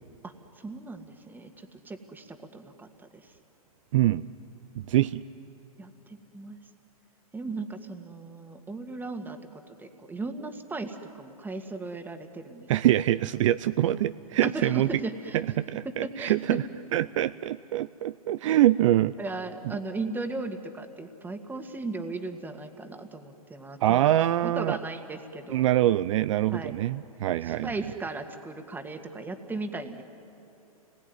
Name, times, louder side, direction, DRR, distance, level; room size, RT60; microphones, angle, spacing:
voice 1, 0.2-3.3 5.8-6.6 7.3-9.4 9.8-12.7 14.4-15.4 15.8-16.6 19.2-25.6 26.5-26.7 27.4-30.0, right 3 dB, 10° right, 6 dB, 2.0 m, -37 dB
voice 2, 3.9-4.3 4.8-5.2 12.7-14.9 15.3-16.6 16.9-19.1 23.8-24.8 25.5-27.7, right 13 dB, 55° right, 14 dB, 0.6 m, -24 dB
29.5 x 21.0 x 9.6 m, 2.8 s
hypercardioid pair, 115°, 19 cm